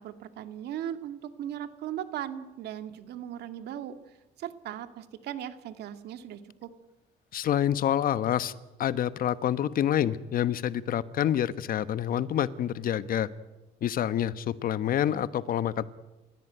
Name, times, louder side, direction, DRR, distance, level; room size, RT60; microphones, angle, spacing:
voice 1, 0.0-4.0 4.4-6.7, right 10 dB, 75° right, 10 dB, 2.1 m, -38 dB
voice 2, 7.3-8.5 8.8-13.3 13.8-15.8, left 10 dB, 55° left, 15 dB, 1.2 m, -27 dB
30.0 x 16.0 x 9.3 m, 1.1 s
cardioid pair, 110°, 17 cm